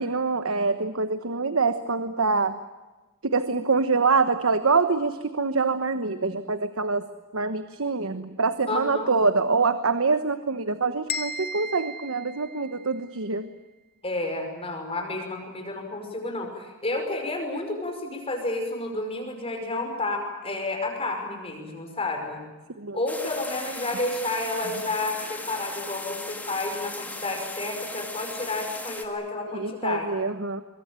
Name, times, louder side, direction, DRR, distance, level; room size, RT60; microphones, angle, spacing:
voice 1, 0.0-2.6 3.2-7.1 7.3-13.5 22.8-23.0 29.5-30.6, right 4 dB, 75° right, 10 dB, 1.2 m, -25 dB
voice 2, 8.7-9.1 14.0-22.4 22.9-30.1, left 2 dB, 25° left, 3 dB, 5.6 m, -30 dB
sound 1, 11.1-13.1, left 2 dB, 50° left, 2.2 m, -35 dB
sound 2, 23.1-29.1, left 2 dB, 10° left, 2.5 m, -38 dB
24.0 x 23.0 x 8.9 m, 1.2 s
head